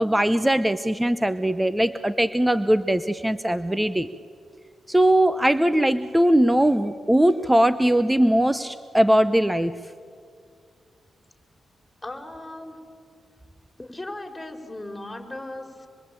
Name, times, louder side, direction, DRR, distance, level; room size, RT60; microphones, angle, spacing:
voice 1, 0.0-4.1 4.9-9.8, right 1 dB, 10° right, 13 dB, 0.9 m, -20 dB
voice 2, 12.0-12.8 13.8-15.9, left 1 dB, 10° left, 2 dB, 4.7 m, -37 dB
26.5 x 23.0 x 9.0 m, 2.2 s
cardioid pair, 65°, 0 cm